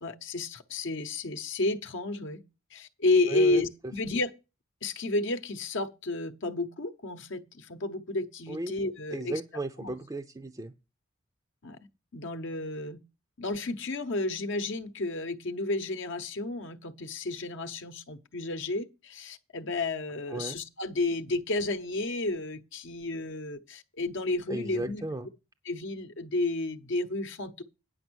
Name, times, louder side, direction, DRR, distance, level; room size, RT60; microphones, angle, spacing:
voice 1, 0.0-2.4 2.7-4.3 4.8-9.4 9.8-9.9 11.6-11.8 12.1-13.0 13.4-25.1 25.7-27.6, left 2 dB, 65° left, 0.9 m, -31 dB
voice 2, 3.3-3.6 8.5-8.7 9.1-10.7 20.3-20.6 24.5-25.3, right 2 dB, 20° right, 0.5 m, -35 dB
9.5 x 6.1 x 6.2 m
head